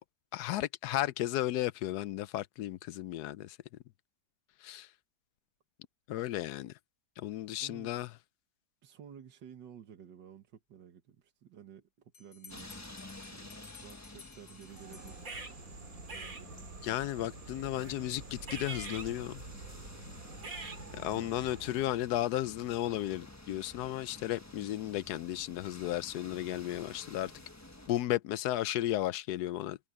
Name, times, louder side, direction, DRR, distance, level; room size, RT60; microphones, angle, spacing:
voice 1, 0.3-3.6 4.6-4.9 6.1-6.7 7.2-8.1 16.8-19.4 21.0-27.3 27.9-29.8, left 14 dB, 70° left, 1.0 m, -34 dB
voice 2, 7.5-8.1 8.8-12.9 13.3-16.7 21.0-21.4, right 8 dB, 85° right, 2.0 m, -54 dB
Bell, 12.1-15.8, left 6 dB, 45° left, 2.5 m, -56 dB
sound 1, 12.5-27.9, left 1 dB, 10° left, 1.1 m, -52 dB
sound 2, 14.7-21.9, right 3 dB, 50° right, 2.8 m, -45 dB
omnidirectional pair, 1.9 m